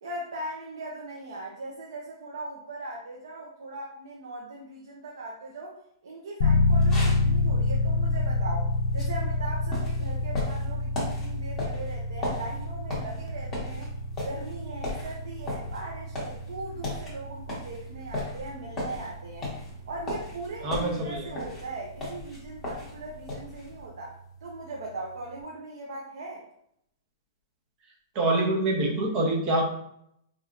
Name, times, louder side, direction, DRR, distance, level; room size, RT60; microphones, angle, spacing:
voice 1, 0.0-13.9 14.2-19.5 19.9-26.4, right 2 dB, 75° right, -2 dB, 0.7 m, -39 dB
sound 1, 6.4-23.1, left 2 dB, 60° left, 0.6 m, -29 dB
sound 2, 6.7-23.8, left 2 dB, 10° left, 0.9 m, -38 dB
voice 2, 20.6-21.2 28.1-29.6, right 2 dB, 25° right, 1 dB, 0.7 m, -25 dB
4.3 x 2.7 x 2.4 m, 0.73 s
hypercardioid pair, 170°, 2 cm